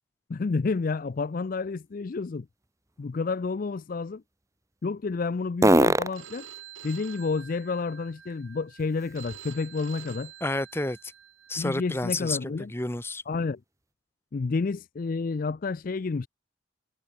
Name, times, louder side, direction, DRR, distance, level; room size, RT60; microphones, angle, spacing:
voice 1, 0.3-2.5 3.0-4.2 4.8-6.5 6.8-10.3 11.6-12.7 13.3-13.6 14.3-16.3, left 4 dB, 45° left, 0.4 m, -30 dB
sound 1, 0.6-9.7 10.1-13.9, right 1 dB, 15° right, 2.2 m, -32 dB
Telephone, 6.1-12.1, right 10 dB, 80° right, 4.2 m, -48 dB
voice 2, 10.4-11.0 11.5-13.2, left 2 dB, 10° left, 1.0 m, -30 dB
head